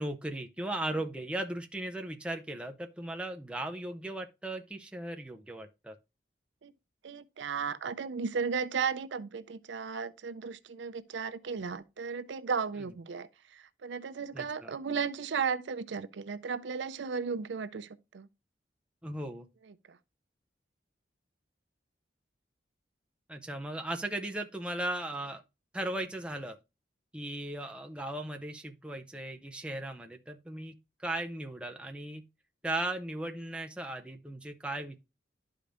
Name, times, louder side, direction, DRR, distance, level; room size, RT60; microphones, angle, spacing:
voice 1, 0.0-6.0 14.3-14.7 19.0-19.5 23.3-25.4 25.7-26.6 27.1-32.2 32.6-35.0, right 1 dB, 5° right, 0.5 m, -37 dB
voice 2, 7.0-18.3 19.6-20.0, right 6 dB, 80° right, 0.5 m, -35 dB
11.5 x 5.0 x 2.5 m
head